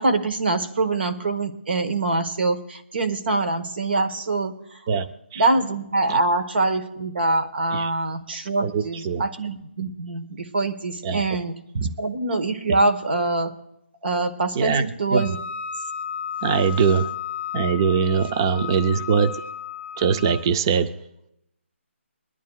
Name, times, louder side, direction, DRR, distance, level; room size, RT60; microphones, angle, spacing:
voice 1, 0.0-4.5 5.4-11.5 12.0-13.5 14.0-15.4, right 2 dB, 50° right, 9 dB, 1.2 m, -24 dB
voice 2, 8.6-9.2 11.0-11.2 11.7-11.9 14.5-15.3 16.4-17.1 17.5-19.4 20.0-21.0, right 6 dB, 20° right, 10 dB, 0.4 m, -22 dB
Wind instrument woodwind instrument, 15.2-20.5, left 8 dB, 60° left, 0.6 m, -34 dB
23.0 x 11.0 x 2.3 m, 0.83 s
hypercardioid pair, 170°, 7 cm